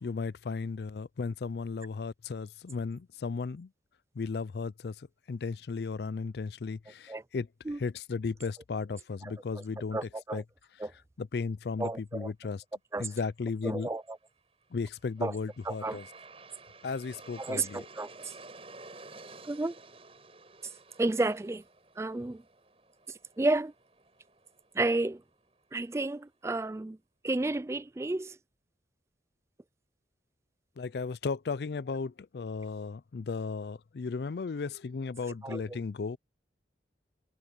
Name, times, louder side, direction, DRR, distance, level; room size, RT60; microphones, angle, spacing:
voice 1, 0.0-3.7 4.2-7.5 7.8-10.0 10.3-10.4 11.2-12.6 13.0-13.9 14.7-16.0 16.8-17.8 30.8-36.2, left 4 dB, 65° left, 0.4 m, -35 dB
voice 2, 9.2-9.6 9.9-10.4 10.8-10.9 11.8-12.3 12.9-13.1 13.6-14.2 15.2-15.4 15.6-16.0 17.4-18.3 19.4-19.7 21.0-21.6 22.0-22.4 23.4-23.7 24.7-25.2 25.7-27.0 27.2-28.4 35.4-35.8, right 2 dB, 15° right, 0.3 m, -31 dB
Aircraft, 14.7-25.8, right 3 dB, 35° right, 7.3 m, -53 dB
head